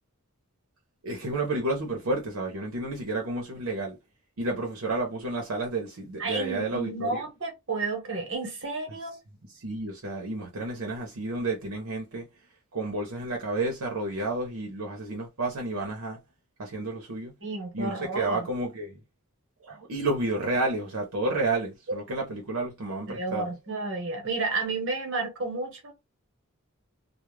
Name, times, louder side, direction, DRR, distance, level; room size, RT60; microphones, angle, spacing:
voice 1, 1.0-4.0 4.4-7.2 9.6-12.3 12.7-16.2 16.6-17.3 17.7-19.0 19.6-23.5, right 2 dB, 80° right, 0.7 m, -31 dB
voice 2, 6.2-9.2 17.4-18.5 23.1-25.9, right 3 dB, 60° right, 1.0 m, -31 dB
2.3 x 2.1 x 3.1 m
head